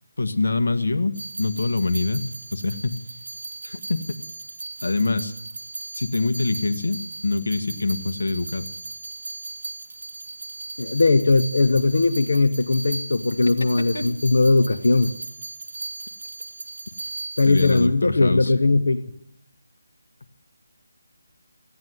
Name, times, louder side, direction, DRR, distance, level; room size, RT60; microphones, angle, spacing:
voice 1, 0.2-2.9 3.6-4.0 4.8-5.3 5.9-8.7 13.9-14.0 17.5-18.5, left 3 dB, 90° left, 10 dB, 1.4 m, -25 dB
sound 1, 1.1-17.9, right 3 dB, 45° right, 1.4 m, -37 dB
voice 2, 10.8-15.2 17.4-19.0, left 3 dB, 60° left, 6 dB, 0.9 m, -19 dB
16.0 x 9.6 x 9.3 m, 0.72 s
figure-of-eight pair, 175°, 0 cm